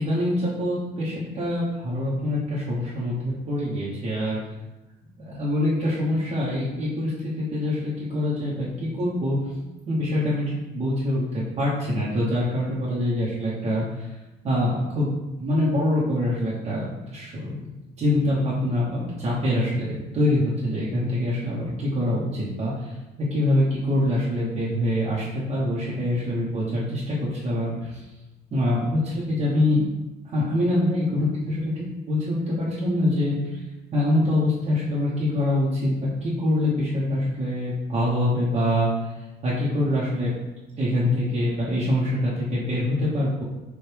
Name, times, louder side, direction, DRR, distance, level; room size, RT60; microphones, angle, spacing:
voice 1, 0.0-4.4 5.3-9.4 9.9-13.8 14.4-15.1 15.4-16.8 17.1-17.7 18.0-22.7 23.3-27.9 28.5-29.8 30.3-33.6 33.9-38.9 39.4-40.3 40.8-43.4, left 1 dB, 40° right, -8 dB, 1.0 m, -24 dB
4.6 x 2.5 x 3.4 m, 1.1 s
cardioid pair, 110°, 17 cm